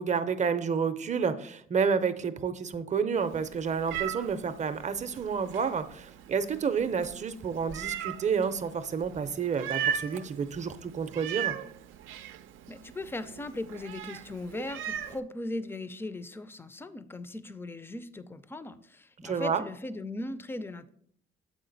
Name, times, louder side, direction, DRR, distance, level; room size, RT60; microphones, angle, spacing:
voice 1, 0.0-11.6 19.2-19.6, right 6 dB, 35° right, 11 dB, 0.5 m, -30 dB
Meow, 3.2-15.2, right 9 dB, 90° right, 0.5 m, -38 dB
voice 2, 12.7-20.9, left 2 dB, 10° left, 14 dB, 0.4 m, -38 dB
7.3 x 5.0 x 3.9 m, 0.66 s
cardioid pair, 90°, 20 cm